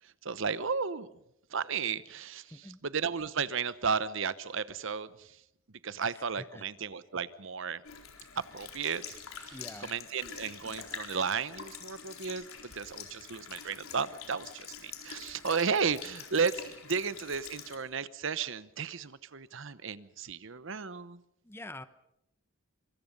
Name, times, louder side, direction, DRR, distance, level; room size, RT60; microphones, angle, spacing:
voice 1, 0.2-1.1 1.5-5.4 5.8-7.8 8.5-9.5 9.8-21.2, right 5 dB, 60° right, 16 dB, 0.9 m, -34 dB
voice 2, 2.5-2.8 6.0-6.7 9.5-9.9 21.4-21.9, left 1 dB, 10° left, 13 dB, 0.9 m, -46 dB
Sink (filling or washing) / Liquid, 7.8-17.8, left 7 dB, 85° left, 4.2 m, -46 dB
25.5 x 24.0 x 5.3 m, 0.79 s
head